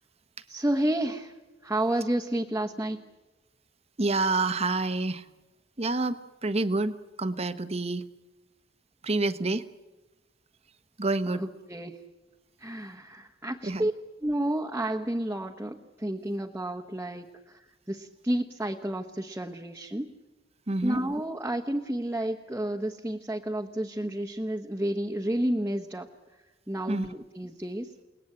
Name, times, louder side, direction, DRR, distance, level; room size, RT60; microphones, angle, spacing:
voice 1, 0.5-1.3 1.6-3.0 11.3-12.0 12.6-13.9 14.2-17.6 17.9-20.1 20.8-26.1 26.7-27.9, right 1 dB, 10° right, 1 dB, 1.2 m, -31 dB
voice 2, 4.0-5.3 5.8-8.0 9.0-9.7 11.0-11.4 13.6-13.9 20.7-21.0 26.9-27.1, right 2 dB, 35° right, 11 dB, 1.1 m, -28 dB
29.5 x 19.0 x 9.0 m, 1.1 s
head